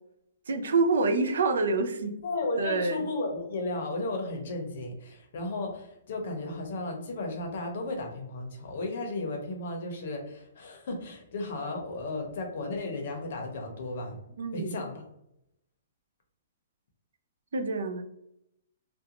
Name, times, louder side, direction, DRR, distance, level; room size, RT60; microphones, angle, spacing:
voice 1, 0.5-2.1 2.6-3.0 14.4-14.8 17.5-18.0, right 3 dB, 80° right, 8 dB, 0.4 m, -27 dB
voice 2, 2.2-14.2 14.5-15.0, left 2 dB, 45° left, 3 dB, 0.6 m, -34 dB
2.4 x 2.2 x 2.8 m, 0.79 s
hypercardioid pair, 180°, 0 cm